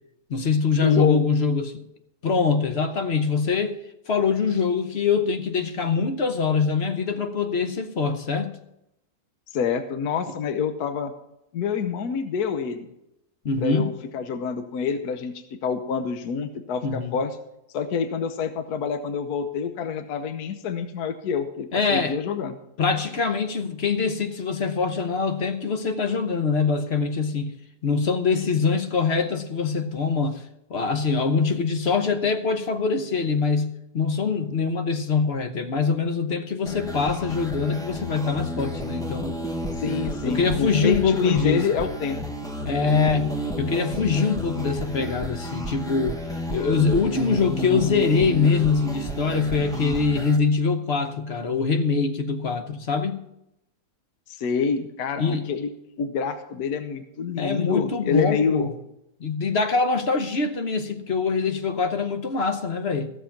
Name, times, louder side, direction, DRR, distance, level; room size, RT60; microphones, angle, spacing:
voice 1, 0.3-1.7 2.2-3.8 4.1-8.6 13.4-13.9 16.8-17.2 21.7-22.2 22.8-27.5 27.8-30.4 30.7-39.4 40.2-41.6 42.6-46.2 46.5-53.2 55.2-55.5 57.4-58.7 59.2-63.1, left 5 dB, 45° left, 1.0 m, -23 dB
voice 2, 0.8-1.2 9.5-11.1 11.5-12.9 13.6-15.3 15.6-17.4 17.7-22.6 39.8-42.2 54.3-55.7 56.0-58.7, left 6 dB, 75° left, 1.4 m, -27 dB
sound 1, 36.7-50.4, equal, 5° left, 1.0 m, -32 dB
15.5 x 6.9 x 5.8 m
omnidirectional pair, 1.7 m